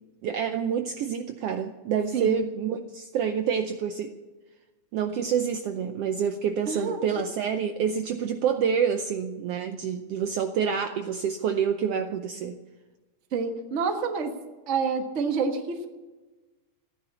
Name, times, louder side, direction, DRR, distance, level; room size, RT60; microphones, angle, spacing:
voice 1, 0.2-4.1 4.9-12.6, right 7 dB, 70° right, 7 dB, 1.5 m, -27 dB
voice 2, 6.7-7.3 13.3-14.3 14.7-15.9, right 5 dB, 40° right, 5 dB, 1.1 m, -28 dB
15.0 x 10.0 x 8.3 m, 1.2 s
omnidirectional pair, 3.3 m